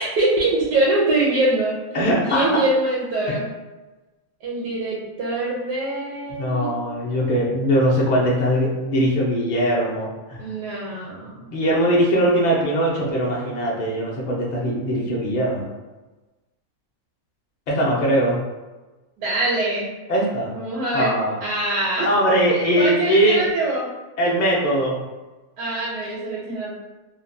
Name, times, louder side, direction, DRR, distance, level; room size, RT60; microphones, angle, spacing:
voice 1, 0.0-1.7 2.3-3.5 4.4-6.7 10.4-11.4 19.2-19.9 20.5-21.1 21.4-22.1 22.8-23.9 25.6-26.7, right 2 dB, 80° right, -5 dB, 1.1 m, -23 dB
voice 2, 1.9-2.5 3.3-3.4 6.3-10.4 11.5-15.7 17.7-18.4 20.1-20.5 20.9-21.4 22.0-23.5 24.2-25.0, equal, 50° left, -4 dB, 0.5 m, -21 dB
2.8 x 2.2 x 2.6 m, 1.2 s
omnidirectional pair, 1.6 m